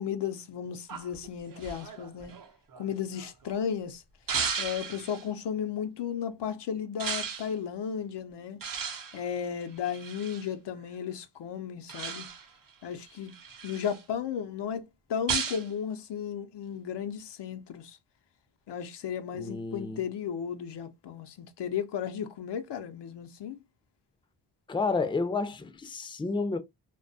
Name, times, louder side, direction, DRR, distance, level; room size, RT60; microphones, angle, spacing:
voice 1, 0.0-2.3 2.8-4.0 4.6-8.6 9.1-12.3 12.8-13.3 13.6-18.0 18.7-23.6, left 8 dB, 70° left, 0.5 m, -34 dB
sound 1, 0.9-3.5 4.3-5.3 7.0-7.5 8.6-10.5 11.9-12.6 13.1-14.0 15.3-15.7, right 6 dB, 50° right, 0.6 m, -35 dB
voice 2, 19.3-20.0 24.7-26.6, left 3 dB, 10° left, 0.4 m, -30 dB
2.2 x 2.2 x 2.6 m
cardioid pair, 50°, 43 cm